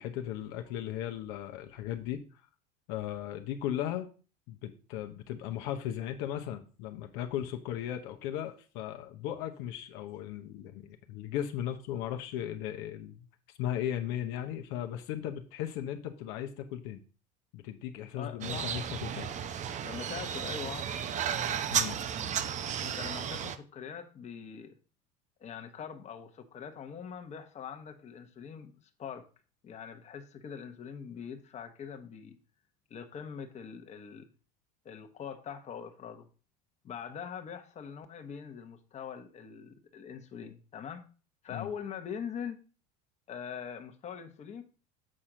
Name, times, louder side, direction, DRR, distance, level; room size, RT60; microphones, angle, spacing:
voice 1, 0.0-2.2 2.9-4.1 4.5-13.3 13.6-17.0 17.5-19.3 21.5-22.0 41.5-41.7, left 11 dB, 65° left, 6 dB, 0.9 m, -37 dB
voice 2, 18.2-18.8 19.8-20.9 22.8-24.7 25.4-28.7 29.0-29.2 29.6-32.4 32.9-34.3 34.8-36.3 36.8-41.0 41.4-42.6 43.3-44.6, left 7 dB, 35° left, 6 dB, 1.1 m, -43 dB
sound 1, 18.4-23.6, right 8 dB, 35° right, 0.7 m, -33 dB
7.7 x 4.3 x 5.0 m, 0.36 s
supercardioid pair, 105°, 21 cm